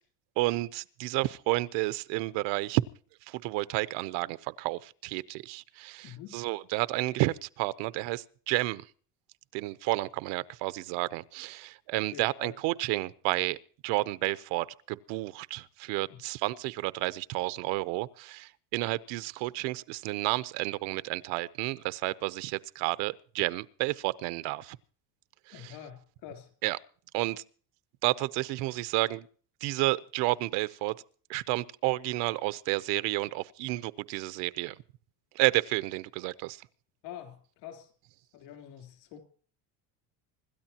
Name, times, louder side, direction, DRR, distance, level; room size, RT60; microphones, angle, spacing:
voice 1, 0.4-2.8 3.3-8.8 9.5-13.6 13.8-24.8 25.6-25.7 26.6-26.8 27.1-27.4 28.0-29.3 29.6-31.0 31.3-34.8 35.3-36.6, right 19 dB, 75° right, 0.8 m, -31 dB
voice 2, 6.0-6.4 12.1-12.5 16.1-16.2 25.5-26.5 37.0-37.9 38.3-39.2, left 10 dB, 75° left, 3.5 m, -46 dB
26.0 x 13.0 x 2.9 m
cardioid pair, 170°, 43 cm